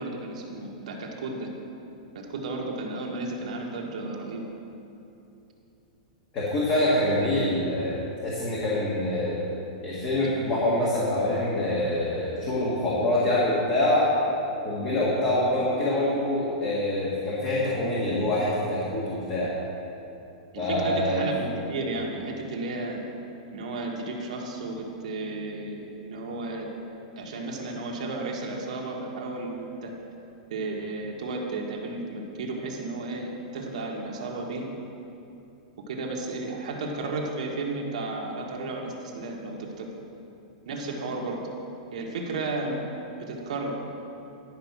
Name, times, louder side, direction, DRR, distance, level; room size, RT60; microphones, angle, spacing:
voice 1, 0.0-1.5 2.1-4.4 20.5-23.0 23.5-26.7 27.2-29.9 30.5-34.7 35.9-39.9 40.6-41.4 41.9-42.8 43.2-43.7, right 2 dB, 75° right, 0 dB, 1.5 m, -33 dB
voice 2, 6.3-9.4 9.8-14.2 14.6-19.5 20.6-21.3, left 1 dB, 30° left, -7 dB, 1.7 m, -25 dB
11.0 x 5.3 x 6.0 m, 2.8 s
supercardioid pair, 155°, 4 cm